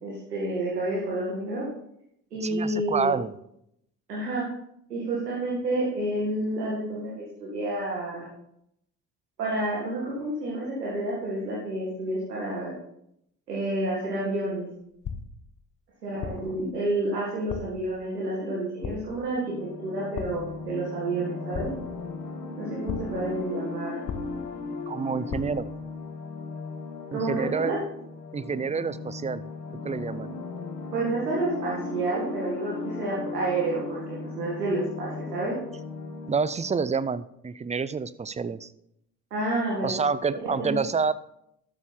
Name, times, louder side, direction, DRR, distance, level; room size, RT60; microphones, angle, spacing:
voice 1, 0.0-1.7 2.3-3.1 4.1-4.5 4.9-8.3 9.4-12.7 13.5-14.7 16.0-19.6 19.8-21.7 22.6-24.0 27.1-27.8 30.9-35.6 39.3-40.0 40.6-40.7, right 2 dB, 85° right, -5 dB, 2.1 m, -29 dB
voice 2, 2.4-3.3 24.9-25.7 27.1-27.7 28.3-29.4 29.8-30.3 36.3-38.7 39.8-41.1, right 5 dB, 15° right, 16 dB, 0.5 m, -28 dB
sound 1, 15.0-15.5 16.2-16.6 17.5-17.9 18.8-19.3 20.2-20.6 21.5-22.1 22.9-23.3 24.1-24.6 25.3-25.7, left 6 dB, 40° left, 1.2 m, -37 dB
sound 2, 19.4-36.7, left 3 dB, 90° left, 1.2 m, -37 dB
12.5 x 6.8 x 4.4 m, 0.75 s
figure-of-eight pair, 50°, 47 cm